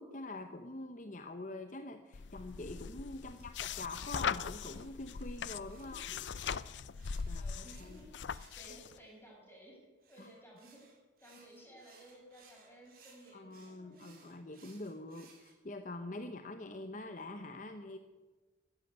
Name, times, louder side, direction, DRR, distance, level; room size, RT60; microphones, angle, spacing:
voice 1, 0.0-6.1 7.3-7.4 7.8-8.0 10.2-10.3 13.3-18.0, left 2 dB, 45° left, 7 dB, 0.8 m, -45 dB
sound 1, 2.1-8.9, left 6 dB, 80° left, 0.5 m, -40 dB
voice 2, 3.2-3.5 5.8-6.2 7.3-10.8 11.2-14.1, right 1 dB, 10° left, -2 dB, 5.6 m, -57 dB
sound 2, 3.4-9.2 10.0-15.5, right 5 dB, 50° right, 3.9 m, -63 dB
13.0 x 10.5 x 9.3 m, 1.3 s
head